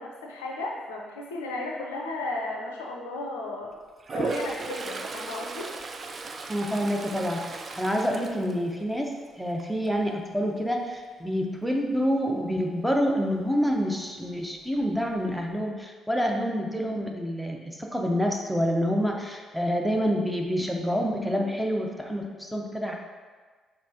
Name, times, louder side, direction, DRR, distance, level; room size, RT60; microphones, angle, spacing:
voice 1, 0.0-3.7 4.1-5.7, left 2 dB, 75° left, -1 dB, 0.4 m, -34 dB
Toilet flush, 4.0-9.2 9.6-10.0 14.4-14.5 14.8-15.5, right 3 dB, 40° right, 0.3 m, -36 dB
voice 2, 6.5-22.9, equal, ahead, 1 dB, 0.7 m, -27 dB
5.3 x 3.3 x 2.7 m, 1.5 s
figure-of-eight pair, 45°, 0 cm